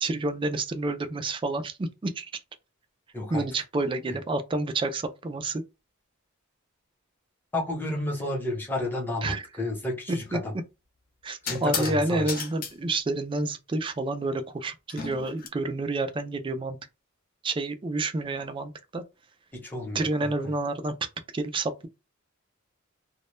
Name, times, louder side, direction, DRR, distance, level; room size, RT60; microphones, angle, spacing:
voice 1, 0.0-2.3 3.3-5.6 9.2-9.5 11.2-16.8 17.4-19.0 19.9-20.9 21.3-21.9, right 2 dB, 25° right, 0.3 m, -29 dB
voice 2, 7.5-10.5 11.4-12.3 19.5-20.5, left 1 dB, 10° left, 0.7 m, -31 dB
sound 1, 10.2-10.4 11.5-12.0 12.3-12.7 14.9-15.5, left 6 dB, 45° left, 0.5 m, -34 dB
2.2 x 2.1 x 3.0 m
head